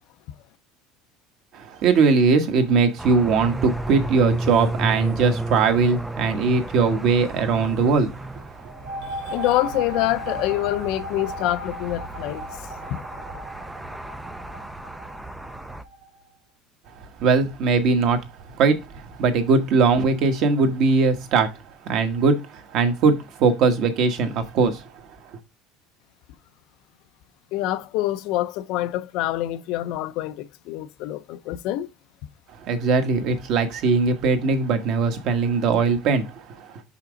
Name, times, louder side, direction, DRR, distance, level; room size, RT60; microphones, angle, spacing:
voice 1, 1.5-8.4 17.2-18.2 18.5-21.6 21.8-24.9 32.6-36.8, right 4 dB, 45° right, 1.3 m, -20 dB
sound 1, 3.0-15.8, right 2 dB, 5° right, 0.4 m, -33 dB
sound 2, 8.6-16.1, right 1 dB, 85° right, 1.1 m, -36 dB
voice 2, 9.0-13.0 27.5-31.9, left 15 dB, 55° left, 0.5 m, -26 dB
6.0 x 5.7 x 3.8 m
cardioid pair, 175°, 0 cm